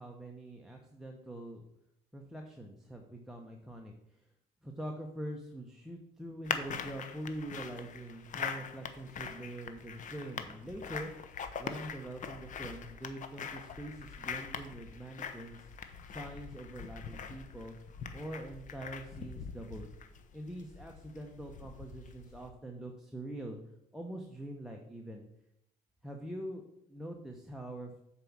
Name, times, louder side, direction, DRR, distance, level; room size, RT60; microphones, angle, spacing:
voice 1, 0.0-1.6 2.1-4.2 4.6-11.1 11.6-15.7 16.1-17.7 18.1-19.9 20.3-23.6 23.9-25.3 26.0-28.0, right 1 dB, 5° right, 2 dB, 1.0 m, -44 dB
sound 1, 6.4-22.5, left 6 dB, 50° left, 0.9 m, -43 dB
7.6 x 4.7 x 7.3 m, 0.80 s
cardioid pair, 110°, 17 cm